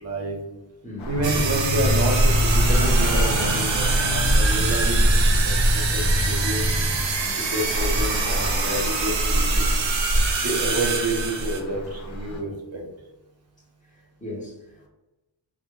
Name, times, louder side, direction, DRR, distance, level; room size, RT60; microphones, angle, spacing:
voice 1, 0.0-0.4 1.1-6.7 7.3-9.8 10.4-12.8, right 1 dB, 35° right, 0 dB, 0.7 m, -29 dB
Traffic noise roadway noise, 1.0-12.4, equal, 80° left, 0.6 m, -24 dB
sound 1, 1.1-7.1, left 1 dB, 50° left, 0.8 m, -27 dB
sound 2, 1.2-11.6, right 5 dB, 70° right, 0.5 m, -26 dB
voice 2, 13.9-14.9, left 1 dB, 15° left, -4 dB, 0.8 m, -39 dB
2.1 x 2.1 x 2.9 m, 1.0 s
wide cardioid pair, 75°, 46 cm